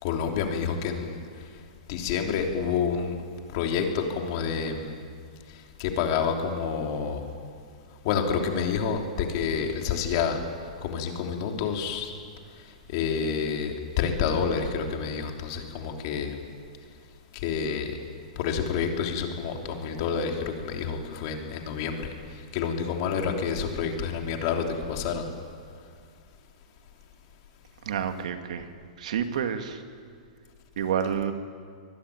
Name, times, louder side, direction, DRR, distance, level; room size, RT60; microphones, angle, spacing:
voice 1, 0.0-1.2 1.9-3.1 3.5-4.9 5.8-7.2 8.0-10.4 10.8-12.1 12.9-16.3 17.3-17.9 18.3-22.1 22.5-25.3, left 6 dB, 35° left, 3 dB, 3.2 m, -28 dB
voice 2, 27.8-28.7 29.0-29.8 30.8-31.3, right 8 dB, 60° right, 7 dB, 2.2 m, -29 dB
25.0 x 21.5 x 9.8 m, 2.1 s
supercardioid pair, 175°, 4 cm